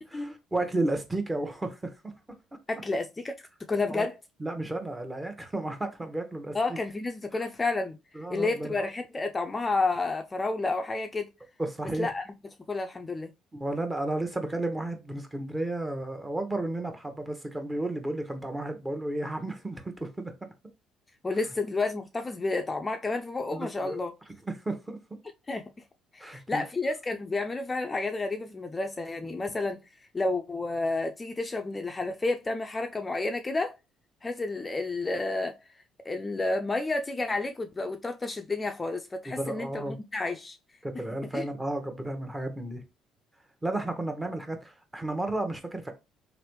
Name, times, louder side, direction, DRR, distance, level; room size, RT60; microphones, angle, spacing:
voice 1, 0.1-2.1 3.9-4.1 4.4-6.8 8.1-8.8 11.6-12.1 13.5-20.3 23.5-24.0 24.5-25.2 26.2-26.6 29.3-29.4 39.2-40.0 40.8-42.8 43.6-45.9, right 2 dB, 15° right, 0.9 m, -33 dB
voice 2, 2.7-3.4 3.7-4.1 6.5-8.0 8.3-11.3 12.0-12.2 12.7-13.3 21.2-24.1 25.5-25.6 26.1-29.8 30.1-33.8 34.2-35.6 36.1-40.6 41.3-41.5, left 3 dB, 25° left, 0.4 m, -30 dB
3.1 x 2.6 x 3.0 m
hypercardioid pair, 60°, 0 cm